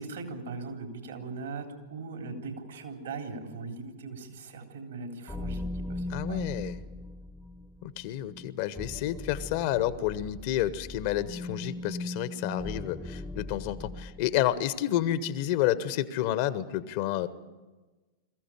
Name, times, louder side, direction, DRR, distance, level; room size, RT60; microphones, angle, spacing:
voice 1, 0.0-5.6 5.9-6.4, right 4 dB, 65° right, 4 dB, 3.5 m, -39 dB
sound 1, 5.3-14.5, left 2 dB, 5° left, 0.9 m, -39 dB
voice 2, 6.1-6.8 7.8-17.3, left 12 dB, 50° left, 15 dB, 1.0 m, -30 dB
22.5 x 15.5 x 9.9 m, 1.2 s
figure-of-eight pair, 90°, 0 cm